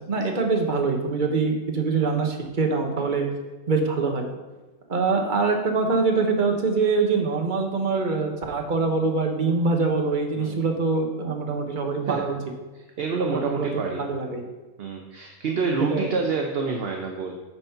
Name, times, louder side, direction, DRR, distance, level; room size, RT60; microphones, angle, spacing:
voice 1, 0.0-3.3 3.7-4.3 4.9-12.4 13.3-13.7 14.0-14.4 15.9-16.1, right 4 dB, 35° right, 3 dB, 1.1 m, -24 dB
voice 2, 12.7-14.0 14.8-17.3, right 4 dB, 55° right, 2 dB, 0.8 m, -27 dB
10.0 x 4.1 x 5.6 m, 1.2 s
omnidirectional pair, 1.5 m